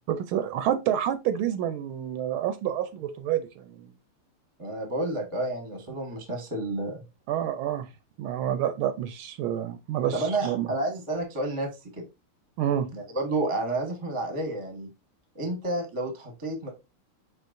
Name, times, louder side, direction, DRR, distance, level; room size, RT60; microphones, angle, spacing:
voice 1, 0.1-3.9 7.3-7.9 8.2-10.7 12.6-12.9, right 10 dB, 80° right, 1.4 m, -28 dB
voice 2, 4.6-7.0 10.1-11.7 12.0-12.1 12.9-14.9 15.3-16.7, right 2 dB, 20° right, 0.9 m, -30 dB
4.6 x 4.4 x 2.6 m
omnidirectional pair, 2.4 m